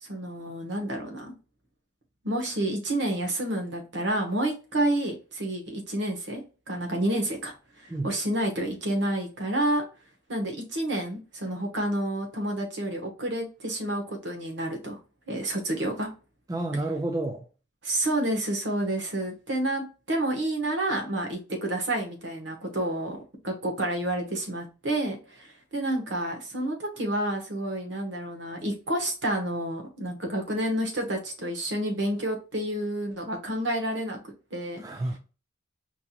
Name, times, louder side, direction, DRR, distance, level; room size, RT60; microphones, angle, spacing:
voice 1, 0.0-1.3 2.2-9.8 10.3-15.0 15.3-16.1 17.8-34.2 34.5-34.8, right 1 dB, 60° right, 1.1 m, -29 dB
voice 2, 16.5-17.5 34.8-35.2, right 2 dB, 15° right, 0.3 m, -30 dB
4.5 x 2.8 x 2.2 m
head